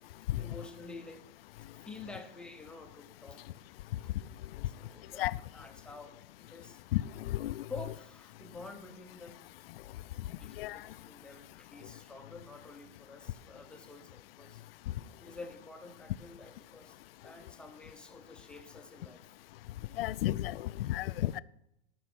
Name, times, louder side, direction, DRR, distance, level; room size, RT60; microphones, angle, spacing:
voice 1, 0.1-1.2 1.8-3.5 4.6-5.3 5.5-6.8 7.7-9.4 10.4-14.6 15.2-17.0 17.2-19.2 21.2-21.4, left 3 dB, 5° left, 0.6 m, -49 dB
voice 2, 7.3-7.6 10.6-10.8 20.0-21.4, left 15 dB, 70° left, 0.5 m, -32 dB
13.0 x 6.3 x 5.9 m
supercardioid pair, 160°, 30 cm